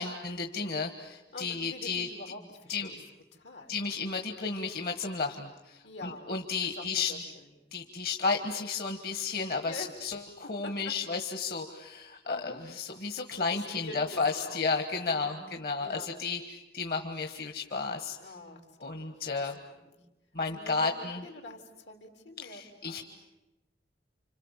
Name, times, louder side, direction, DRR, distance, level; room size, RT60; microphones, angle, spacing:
voice 1, 0.0-2.1 2.7-2.9 3.7-7.1 7.7-18.2 18.8-19.6 20.3-21.2 22.4-23.0, left 4 dB, 55° left, 5 dB, 1.5 m, -33 dB
voice 2, 1.3-2.9 3.3-3.9 4.3-4.5 5.8-7.5 9.6-10.0 10.4-11.0 12.2-12.6 13.5-14.7 15.1-15.5 15.8-16.2 18.2-19.2 19.7-20.0 20.5-23.0, left 2 dB, 90° left, 3 dB, 3.8 m, -46 dB
30.0 x 26.5 x 7.4 m, 0.99 s
head